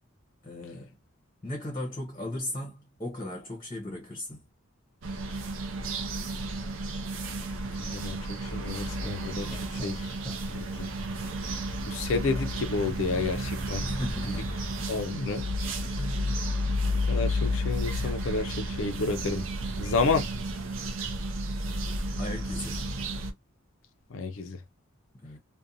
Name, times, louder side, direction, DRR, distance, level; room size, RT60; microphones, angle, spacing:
voice 1, 0.4-1.0 1.4-4.4 13.8-14.6 15.8-16.5 21.9-22.8 25.2-25.4, left 1 dB, 25° left, 0.7 m, -37 dB
sound 1, 5.0-23.3, equal, 70° right, 0.6 m, -32 dB
voice 2, 7.8-8.2 8.4-10.1 11.8-13.8 14.9-15.4 17.1-19.4 19.8-20.3 24.1-24.6, left 4 dB, 70° left, 0.4 m, -30 dB
sound 2, 8.7-15.0, left 1 dB, 10° right, 1.1 m, -46 dB
2.5 x 2.2 x 2.6 m
head